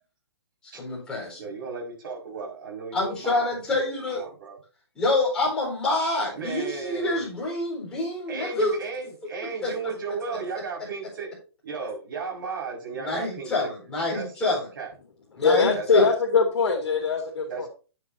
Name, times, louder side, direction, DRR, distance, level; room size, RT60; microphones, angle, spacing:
voice 1, 0.8-1.4 2.9-4.2 4.9-8.8 9.6-9.7 10.1-10.2 12.9-14.7 15.3-16.1, left 2 dB, 5° left, 4.3 m, -27 dB
voice 2, 1.4-4.6 6.3-7.3 8.3-11.3 11.6-13.7 14.1-14.9 15.6-16.1 17.5-17.7, right 4 dB, 50° right, 5.6 m, -35 dB
voice 3, 15.4-17.7, left 4 dB, 75° left, 2.4 m, -22 dB
11.0 x 9.3 x 2.8 m
hypercardioid pair, 170°, 14 cm